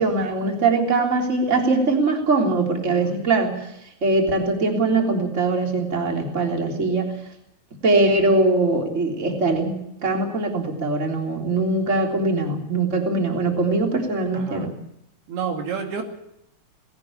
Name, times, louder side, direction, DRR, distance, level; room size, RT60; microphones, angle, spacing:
voice 1, 0.0-3.5 4.0-7.1 7.8-9.7 10.0-14.7, right 3 dB, 20° right, 2 dB, 3.4 m, -21 dB
voice 2, 14.3-14.7 15.3-16.0, right 6 dB, 80° right, 4 dB, 4.6 m, -30 dB
19.5 x 18.0 x 8.6 m, 0.79 s
omnidirectional pair, 4.4 m